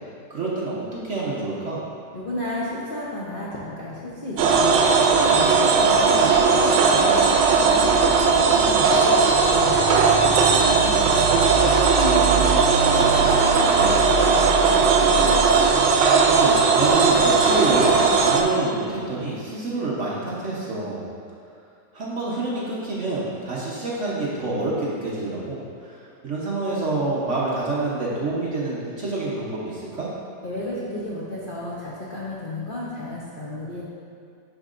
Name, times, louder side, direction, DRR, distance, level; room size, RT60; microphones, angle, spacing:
voice 1, 0.3-1.8 5.6-6.0 12.0-12.4 16.2-21.0 21.9-30.1, right 2 dB, 50° right, -6 dB, 1.0 m, -27 dB
voice 2, 2.1-5.0 5.3-11.3 11.8-15.4 30.4-33.8, left 1 dB, 55° left, -7 dB, 0.6 m, -32 dB
sound 1, 4.4-18.4, right 4 dB, 80° right, 1.3 m, -17 dB
10.0 x 4.5 x 2.5 m, 2.4 s
omnidirectional pair, 2.0 m